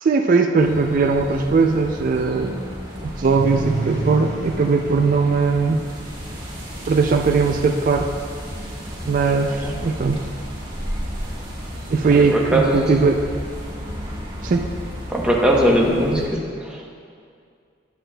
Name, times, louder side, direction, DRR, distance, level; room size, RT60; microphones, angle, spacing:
voice 1, 0.0-2.6 3.0-5.9 6.9-8.1 9.0-10.3 11.9-13.2 14.4-14.7, right 4 dB, 45° right, 4 dB, 0.3 m, -19 dB
sound 1, 0.6-16.3, equal, 25° right, 1.4 m, -33 dB
sound 2, 3.3-13.2, right 3 dB, 40° left, 1.7 m, -36 dB
voice 2, 12.3-12.9 15.1-16.8, equal, 5° right, -2 dB, 0.8 m, -19 dB
9.6 x 8.2 x 2.2 m, 2.3 s
head